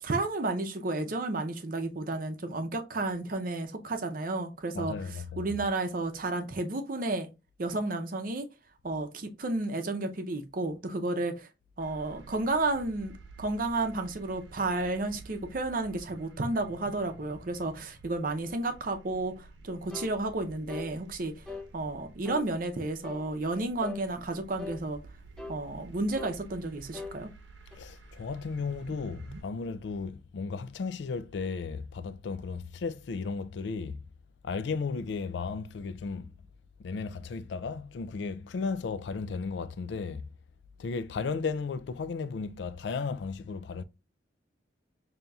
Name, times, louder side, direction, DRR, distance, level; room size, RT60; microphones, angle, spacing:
voice 1, 0.0-4.9 5.4-7.3 7.6-8.5 8.8-11.5 11.8-13.1 13.4-21.3 21.7-25.0 25.5-27.3, right 2 dB, 50° right, 0.6 m, -32 dB
voice 2, 4.7-5.6 27.7-34.0 34.4-36.3 36.8-40.3 40.8-43.8, left 4 dB, 70° left, 0.4 m, -35 dB
sound 1, 11.8-29.4, right 3 dB, 90° right, 0.8 m, -51 dB
sound 2, 19.9-20.2 20.7-20.9 21.5-21.7 22.3-22.5 23.0-23.3 23.8-24.0 24.6-24.8 25.4-25.6 26.2-26.4 26.9-27.2 27.7-27.8, left 4 dB, 5° left, 0.4 m, -41 dB
5.4 x 2.8 x 2.3 m
head